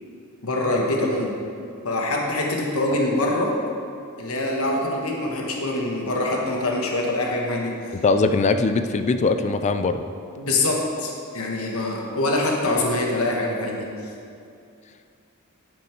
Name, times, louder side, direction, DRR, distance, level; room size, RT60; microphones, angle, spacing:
voice 1, 0.4-1.3 1.8-3.5 4.2-7.7 10.4-13.9, left 2 dB, 70° left, -1 dB, 1.2 m, -24 dB
voice 2, 7.9-10.0, left 3 dB, 30° left, 9 dB, 0.3 m, -21 dB
11.0 x 5.4 x 4.4 m, 2.4 s
head